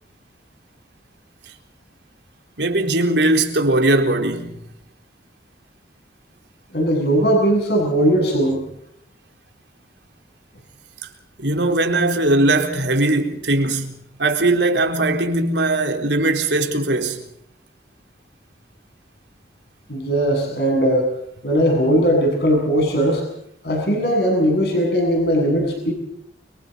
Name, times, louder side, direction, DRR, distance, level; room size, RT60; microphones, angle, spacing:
voice 1, 2.6-4.6 11.4-13.9 14.2-17.2, right 2 dB, 80° right, 4.1 m, -19 dB
voice 2, 6.7-8.6 19.9-21.1 21.4-23.2 23.6-25.9, equal, 65° left, 7.9 m, -19 dB
30.0 x 24.5 x 4.1 m
head